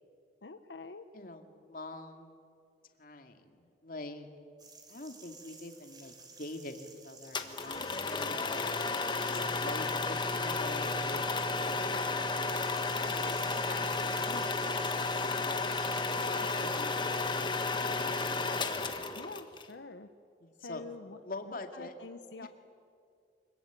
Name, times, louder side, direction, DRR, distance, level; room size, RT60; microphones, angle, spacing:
voice 1, 0.4-1.1 10.6-10.8 19.1-20.1 20.6-22.5, left 3 dB, 90° left, 8 dB, 1.0 m, -47 dB
voice 2, 1.1-2.4 3.0-4.3 4.9-8.7 9.3-12.1 12.9-17.5 17.8-18.5 20.4-20.8 21.2-22.0 22.4-22.5, left 2 dB, 55° left, 5 dB, 2.3 m, -45 dB
sound 1, 4.6-16.8, right 3 dB, 25° right, 3.6 m, -56 dB
sound 2, 7.3-19.6, left 3 dB, 25° left, 1.5 m, -32 dB
25.0 x 22.5 x 9.2 m, 2.4 s
head